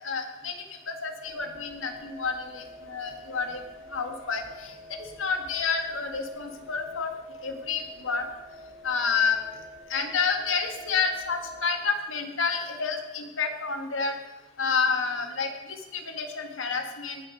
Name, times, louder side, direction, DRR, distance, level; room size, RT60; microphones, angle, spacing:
voice 1, 0.0-0.6 0.9-3.6 3.9-4.7 5.0-7.1 7.4-8.3 8.8-9.4 9.9-14.2 14.6-17.2, left 5 dB, 85° left, 5 dB, 1.8 m, -29 dB
sound 1, 1.3-11.7, left 1 dB, 5° left, 2.3 m, -47 dB
18.0 x 6.4 x 6.4 m, 1.0 s
head